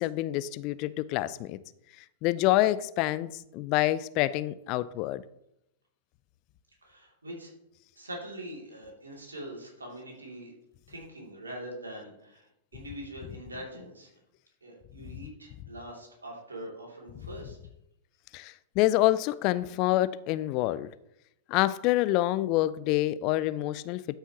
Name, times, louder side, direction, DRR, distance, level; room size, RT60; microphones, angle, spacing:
voice 1, 0.0-1.6 2.0-5.2 18.3-20.9 21.5-24.2, left 16 dB, 40° left, 0.4 m, -27 dB
voice 2, 6.8-7.5 8.0-10.5 10.9-14.1 14.6-17.6, right 1 dB, 80° right, 2.7 m, -43 dB
12.5 x 5.6 x 2.9 m
figure-of-eight pair, 100°, 0 cm